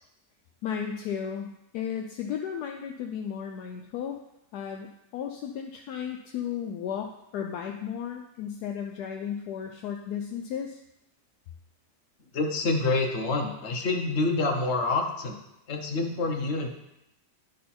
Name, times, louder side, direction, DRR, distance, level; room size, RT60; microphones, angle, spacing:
voice 1, 0.6-4.2 4.5-10.8, left 8 dB, 75° left, 3 dB, 1.1 m, -34 dB
voice 2, 12.3-15.4 15.7-16.7, left 3 dB, 45° left, 2 dB, 1.2 m, -27 dB
11.0 x 3.9 x 4.3 m, 0.88 s
omnidirectional pair, 1.8 m